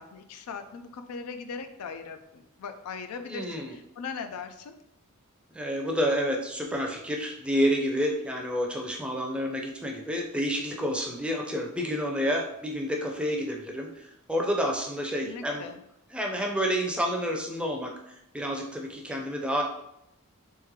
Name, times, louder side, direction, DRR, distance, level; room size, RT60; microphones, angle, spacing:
voice 1, 0.0-4.8 15.2-15.8, left 5 dB, 85° left, 7 dB, 0.4 m, -39 dB
voice 2, 3.2-3.8 5.5-14.0 14.3-15.7 16.1-19.6, equal, 5° right, 1 dB, 0.5 m, -29 dB
3.7 x 3.2 x 3.1 m, 0.80 s
head